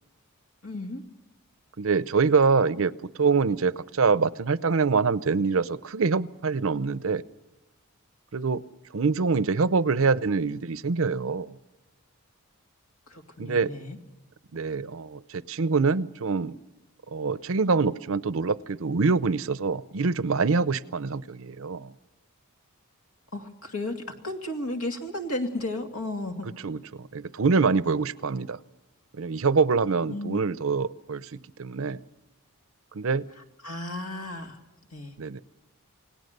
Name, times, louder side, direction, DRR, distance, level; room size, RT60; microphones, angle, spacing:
voice 1, 0.6-1.0 13.1-14.0 23.3-26.5 30.1-30.4 33.6-34.6 34.9-35.2, left 1 dB, 75° left, 5 dB, 2.5 m, -34 dB
voice 2, 1.8-2.9 3.2-7.2 8.3-8.6 8.9-11.6 13.4-13.7 14.5-16.5 17.1-21.9 26.6-28.6 29.1-31.3 31.6-32.0 32.9-33.3 35.2-35.4, right 4 dB, 65° right, 18 dB, 0.7 m, -25 dB
28.0 x 18.0 x 6.7 m, 1.1 s
head